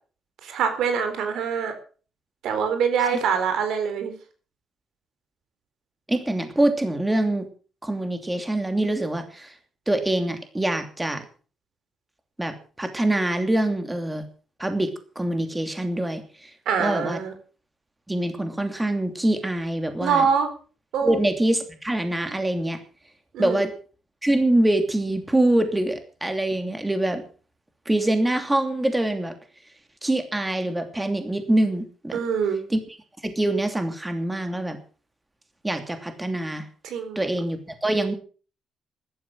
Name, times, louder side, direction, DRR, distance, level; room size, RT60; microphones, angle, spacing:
voice 1, 0.4-1.7 2.4-4.1 16.7-17.3 20.0-20.5 20.9-21.2 23.3-23.7 32.1-32.6 36.8-37.2, right 6 dB, 85° right, 8 dB, 4.1 m, -24 dB
voice 2, 6.1-7.5 7.8-9.5 9.9-11.2 12.4-14.2 14.6-14.9 15.1-16.5 16.8-17.2 18.1-20.2 21.0-22.8 23.4-23.7 24.2-27.2 27.9-29.3 30.0-32.2 32.7-32.8 33.2-34.8 35.6-36.7 37.1-38.1, right 1 dB, 10° right, 7 dB, 2.9 m, -24 dB
14.5 x 12.5 x 6.4 m, 0.40 s
cardioid pair, 95°, 0 cm